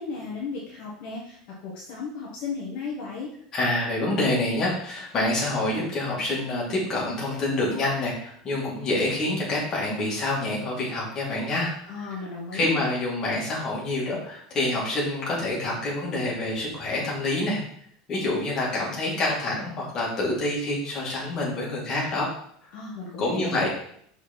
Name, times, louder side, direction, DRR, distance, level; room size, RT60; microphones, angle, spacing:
voice 1, 0.0-3.3 11.9-12.9 22.7-23.7, left 4 dB, 55° left, -4 dB, 1.5 m, -35 dB
voice 2, 3.5-12.3 12.5-17.6 18.1-22.3 22.6-22.7 23.2-23.7, left 2 dB, 25° left, -5 dB, 2.4 m, -27 dB
6.0 x 4.5 x 4.4 m, 0.65 s
cardioid pair, 170°, 2 cm